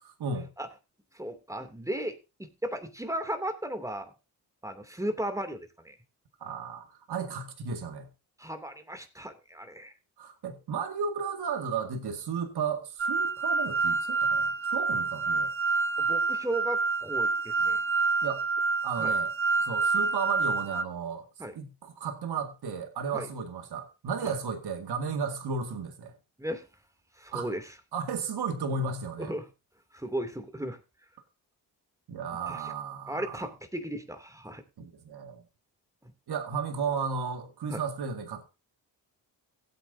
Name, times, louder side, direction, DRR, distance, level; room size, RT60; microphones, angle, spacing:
voice 1, 1.1-4.1 4.6-6.0 8.4-9.9 16.0-17.8 19.0-19.1 21.4-21.5 23.1-23.3 24.2-24.3 26.4-26.6 27.2-27.7 29.2-29.5 29.9-30.8 32.5-32.6 33.1-34.6 37.7-37.8, right 1 dB, 5° right, 2.7 m, -35 dB
voice 2, 6.4-8.1 10.2-15.5 18.2-18.4 18.8-19.3 19.6-21.3 21.5-26.1 27.3-27.5 27.9-29.3 32.1-33.5 34.8-35.4 36.3-38.5, right 5 dB, 65° right, 2.1 m, -34 dB
sound 1, 13.0-20.8, right 4 dB, 30° right, 1.1 m, -27 dB
16.0 x 8.6 x 2.7 m
supercardioid pair, 50°, 43 cm